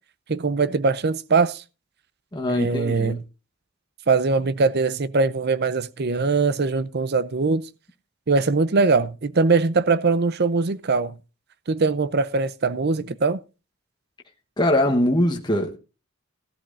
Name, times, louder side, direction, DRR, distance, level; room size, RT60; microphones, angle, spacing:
voice 1, 0.3-1.6 2.5-3.2 4.1-7.6 8.3-11.2 11.7-13.4, right 4 dB, 50° right, 0.6 m, -21 dB
voice 2, 2.3-3.2 14.6-15.8, left 1 dB, 20° left, 1.1 m, -22 dB
16.5 x 12.0 x 2.6 m
head